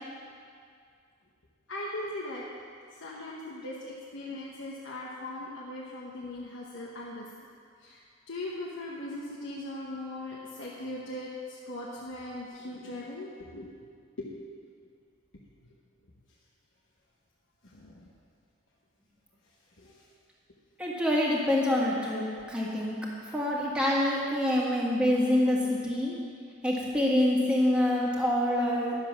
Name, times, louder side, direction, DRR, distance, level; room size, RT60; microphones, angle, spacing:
voice 1, 1.7-2.4 2.9-7.3 7.8-11.3 11.7-13.7 14.2-14.5 17.7-18.0 19.8-19.9, left 1 dB, 70° left, -4 dB, 1.1 m, -39 dB
voice 2, 20.8-23.0 23.3-26.1 26.6-29.0, left 1 dB, 5° right, -5 dB, 1.8 m, -26 dB
11.0 x 7.4 x 6.1 m, 2.2 s
head